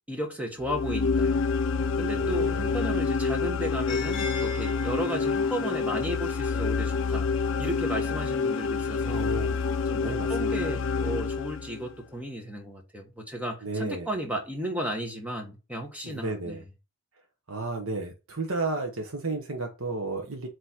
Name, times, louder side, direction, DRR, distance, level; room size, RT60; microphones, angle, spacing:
voice 1, 0.1-1.4 2.0-7.3 7.6-9.3 9.9-16.6, equal, 5° right, 1.2 m, -34 dB
sound 1, 0.6-11.9, left 4 dB, 70° left, 0.5 m, -27 dB
voice 2, 2.0-2.9 9.1-9.7 10.0-10.7 13.6-14.1 16.0-16.6 17.5-20.5, right 3 dB, 90° right, 1.3 m, -33 dB
sound 2, 3.9-9.9, left 4 dB, 25° left, 2.7 m, -44 dB
8.0 x 3.2 x 4.4 m
head